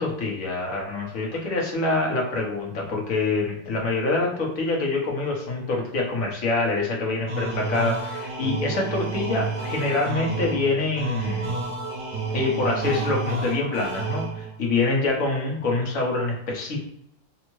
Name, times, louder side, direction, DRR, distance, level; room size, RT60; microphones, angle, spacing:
voice 1, 0.0-11.6 12.3-16.8, left 3 dB, 55° left, -1 dB, 1.1 m, -25 dB
sound 1, 7.3-14.7, right 3 dB, 65° right, 1.0 m, -30 dB
3.5 x 2.0 x 3.0 m, 0.79 s
omnidirectional pair, 2.0 m